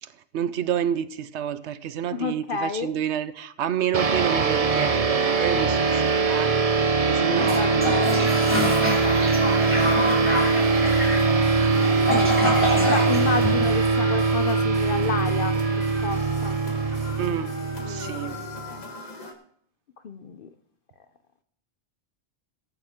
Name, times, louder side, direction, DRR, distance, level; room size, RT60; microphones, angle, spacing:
voice 1, 0.0-6.5 7.0-8.0 17.2-17.6 17.9-18.4, right 9 dB, 85° right, 14 dB, 1.0 m, -29 dB
voice 2, 2.1-2.9 7.4-8.3 12.1-12.5 12.8-16.6 17.8-18.8 20.0-20.5, left 5 dB, 55° left, 9 dB, 0.8 m, -31 dB
sound 1, 3.9-18.7, right 4 dB, 35° right, 0.8 m, -22 dB
Toilet flush, 7.3-14.3, equal, 10° right, 2.9 m, -27 dB
sound 2, 9.6-19.3, left 3 dB, 40° left, 1.5 m, -40 dB
17.5 x 8.9 x 3.6 m, 0.67 s
omnidirectional pair, 1.1 m